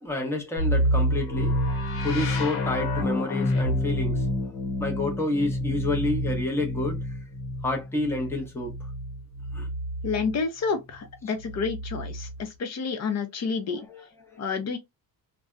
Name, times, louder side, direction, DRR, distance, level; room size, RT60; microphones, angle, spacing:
voice 1, 0.0-1.8 2.0-4.3 4.8-7.1 7.6-8.7 9.5-9.7 13.9-14.0 14.3-14.4, left 2 dB, 5° left, 0.8 m, -29 dB
sound 1, 0.6-10.4 11.4-12.4, left 1 dB, 80° left, 0.9 m, -28 dB
voice 2, 10.0-13.9 14.4-14.8, left 5 dB, 45° left, 0.7 m, -29 dB
2.6 x 2.2 x 2.3 m
cardioid pair, 130°, 38 cm